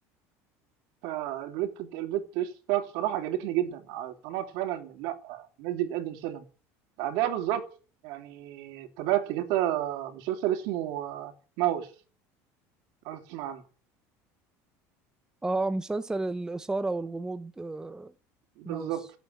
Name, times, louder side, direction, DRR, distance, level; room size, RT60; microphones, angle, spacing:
voice 1, 1.0-6.4 7.0-7.7 8.0-11.3 11.6-11.9 13.0-13.6 18.6-19.0, right 13 dB, 70° right, 3.1 m, -31 dB
voice 2, 15.4-18.1 18.6-19.0, right 2 dB, 10° right, 0.8 m, -32 dB
17.0 x 8.3 x 8.9 m
cardioid pair, 130°, 7 cm